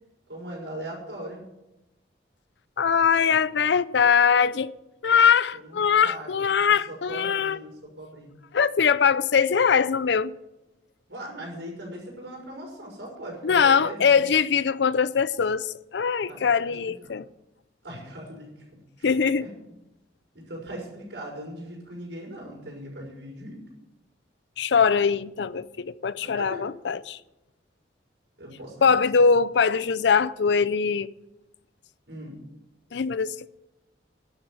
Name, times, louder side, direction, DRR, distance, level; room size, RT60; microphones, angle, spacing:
voice 1, 0.3-1.4 5.5-8.3 11.1-14.2 16.3-16.7 17.0-17.2 17.8-18.5 19.0-19.1 19.4-19.5 20.3-23.6 26.2-26.6 28.4-28.9 29.1-29.2 32.1-32.4, right 1 dB, 75° right, 6.1 m, -39 dB
voice 2, 2.8-4.7 5.0-7.6 8.5-10.3 13.4-17.2 19.0-19.5 24.6-27.2 28.8-31.1 32.9-33.5, left 6 dB, 70° left, 0.5 m, -22 dB
12.0 x 7.0 x 9.3 m
head